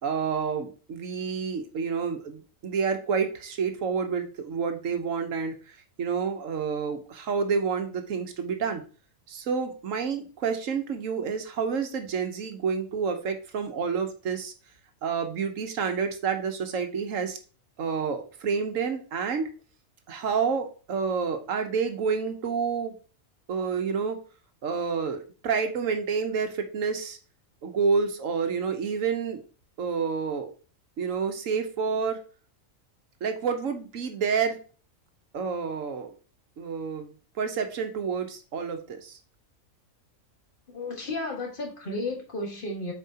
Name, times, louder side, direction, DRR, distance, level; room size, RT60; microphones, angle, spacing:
voice 1, 0.0-8.8 9.3-14.5 15.0-17.4 17.8-19.5 20.1-23.0 23.5-24.2 24.6-27.2 27.6-29.4 29.8-30.5 31.0-32.2 33.2-34.6 35.3-36.1 36.6-39.2, right 5 dB, 70° right, 6 dB, 1.3 m, -29 dB
voice 2, 40.7-42.9, left 2 dB, 40° left, 0 dB, 1.8 m, -33 dB
7.2 x 4.7 x 2.8 m, 0.37 s
omnidirectional pair, 1.4 m